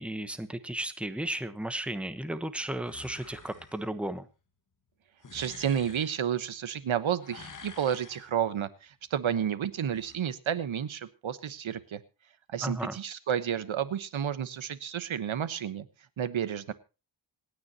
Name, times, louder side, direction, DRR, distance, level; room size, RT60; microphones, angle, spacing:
voice 1, 0.0-4.3 12.6-13.0, right 1 dB, 5° right, 11 dB, 1.0 m, -34 dB
sound 1, 2.8-3.8 5.2-6.1 7.2-8.3 9.8-10.2, left 4 dB, 40° left, 1.8 m, -49 dB
voice 2, 5.3-12.0 12.5-15.9 16.2-16.7, right 9 dB, 90° right, 14 dB, 1.2 m, -31 dB
26.5 x 9.6 x 2.9 m, 0.30 s
wide cardioid pair, 135°, 46 cm